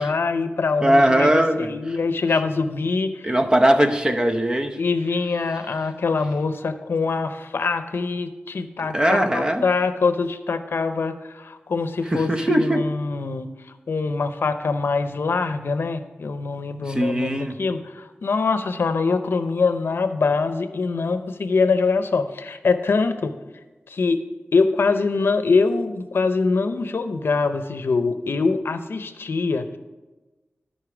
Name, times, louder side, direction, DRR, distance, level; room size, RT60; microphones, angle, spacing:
voice 1, 0.0-3.3 4.8-13.5 13.9-23.3 23.9-24.2 24.5-29.8, left 4 dB, 75° left, 10 dB, 0.6 m, -23 dB
voice 2, 0.8-2.0 3.2-4.8 8.9-9.6 12.1-12.8 16.9-17.6, right 1 dB, 20° right, 6 dB, 0.7 m, -20 dB
13.0 x 5.4 x 4.9 m, 1.2 s
wide cardioid pair, 100°, 4 cm